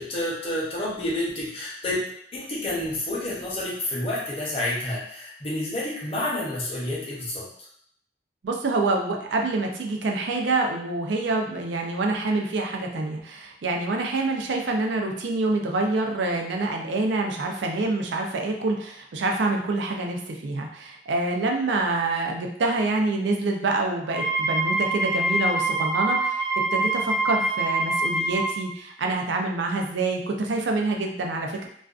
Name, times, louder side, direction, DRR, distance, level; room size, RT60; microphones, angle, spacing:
voice 1, 0.0-2.0 2.3-7.5, left 1 dB, 35° left, -5 dB, 0.7 m, -29 dB
voice 2, 8.4-26.5 26.7-31.7, right 2 dB, 90° right, 2 dB, 0.4 m, -26 dB
Wind instrument woodwind instrument, 24.1-28.6, right 2 dB, 5° left, 0.4 m, -25 dB
2.4 x 2.3 x 2.3 m, 0.68 s
head